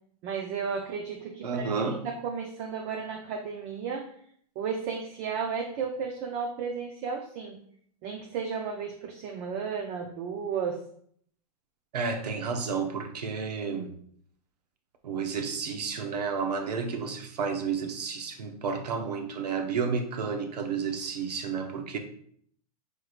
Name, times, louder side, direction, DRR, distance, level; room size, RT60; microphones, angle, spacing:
voice 1, 0.2-4.1 4.6-7.6 8.0-10.8, right 6 dB, 30° right, 0.5 m, -33 dB
voice 2, 1.4-2.0 11.9-13.9 15.0-22.0, right 5 dB, 90° right, 0.9 m, -31 dB
4.7 x 4.6 x 2.4 m
hypercardioid pair, 150°, 20 cm